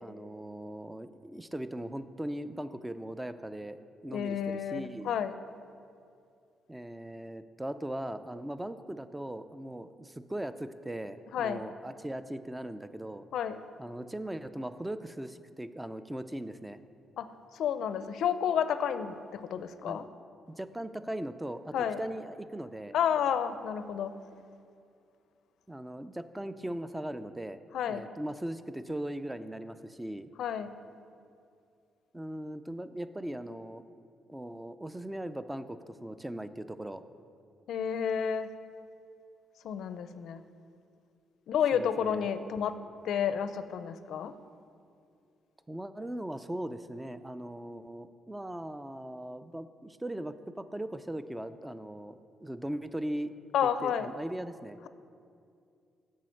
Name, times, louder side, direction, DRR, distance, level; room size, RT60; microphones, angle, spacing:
voice 1, 0.0-5.1 6.7-13.2 13.8-16.8 19.8-20.0 20.6-23.0 25.7-27.6 27.9-30.3 32.1-33.8 34.3-37.0 41.7-42.3 45.7-53.3 53.6-54.8, right 1 dB, 10° right, 12 dB, 0.4 m, -39 dB
voice 2, 4.1-5.3 11.3-11.6 13.3-13.6 17.2-17.3 17.6-20.0 21.7-22.0 22.9-24.1 27.7-28.1 30.4-30.7 37.7-38.5 39.6-40.4 41.5-42.7 43.0-44.3 53.5-54.1, left 8 dB, 75° left, 12 dB, 0.4 m, -30 dB
7.5 x 5.5 x 6.4 m, 2.5 s
cardioid pair, 90°, 0 cm